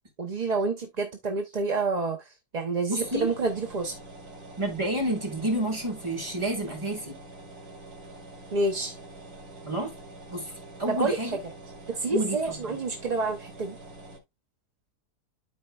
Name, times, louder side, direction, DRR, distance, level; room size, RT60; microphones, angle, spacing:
voice 1, 0.2-4.0 8.5-9.0 10.9-11.4 11.9-13.8, right 3 dB, 35° right, 0.7 m, -28 dB
voice 2, 2.9-3.3 4.6-7.2 9.6-9.9 10.3-10.4 10.8-11.4 12.1-12.8, right 1 dB, 20° right, 2.9 m, -29 dB
sound 1, 3.0-14.2, right 2 dB, 75° right, 3.0 m, -46 dB
13.0 x 4.5 x 2.4 m
omnidirectional pair, 1.7 m